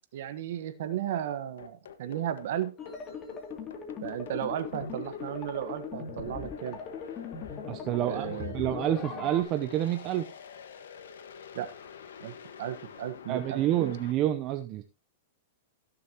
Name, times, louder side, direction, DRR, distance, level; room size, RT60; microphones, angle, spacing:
voice 1, 0.1-2.7 4.0-6.8 8.0-8.5 11.5-11.7 12.2-12.3 12.6-14.0, right 11 dB, 65° right, 10 dB, 1.3 m, -34 dB
sound 1, 1.6-14.1, left 7 dB, 90° left, 1.5 m, -47 dB
sound 2, 2.8-9.4, left 5 dB, 25° left, 2.6 m, -40 dB
voice 2, 7.7-10.2 13.3-14.8, right 12 dB, 35° right, 8 dB, 0.7 m, -28 dB
17.5 x 6.9 x 3.0 m, 0.28 s
supercardioid pair, 145°, 0 cm